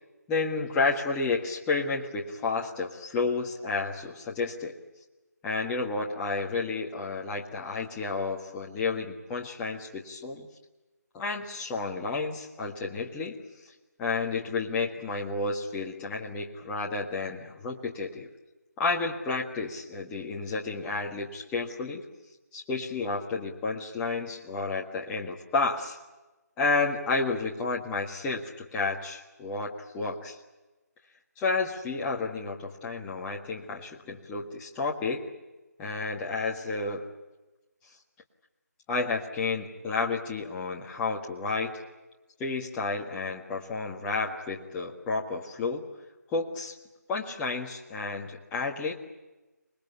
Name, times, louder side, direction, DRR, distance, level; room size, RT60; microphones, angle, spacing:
voice 1, 0.3-4.7 5.4-10.5 11.1-13.4 14.0-18.3 18.8-22.0 22.5-26.0 26.6-30.4 31.4-35.2 35.8-37.1 38.9-41.8 42.4-45.9 46.3-46.7 47.1-48.9, left 3 dB, 10° left, -2 dB, 1.6 m, -31 dB
26.5 x 20.5 x 8.3 m, 1.1 s
figure-of-eight pair, 160°, 10 cm